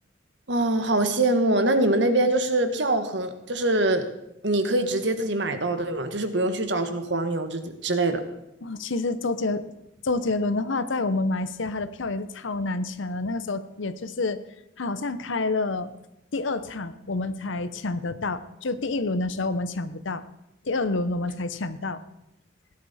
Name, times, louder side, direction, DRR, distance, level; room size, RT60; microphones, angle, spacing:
voice 1, 0.5-4.0 4.4-8.2, right 2 dB, 60° right, 8 dB, 1.4 m, -24 dB
voice 2, 8.6-9.7 10.0-14.4 14.8-15.9 16.3-20.2 20.6-22.0, left 3 dB, 75° left, 13 dB, 0.8 m, -28 dB
17.5 x 11.5 x 4.3 m, 0.87 s
head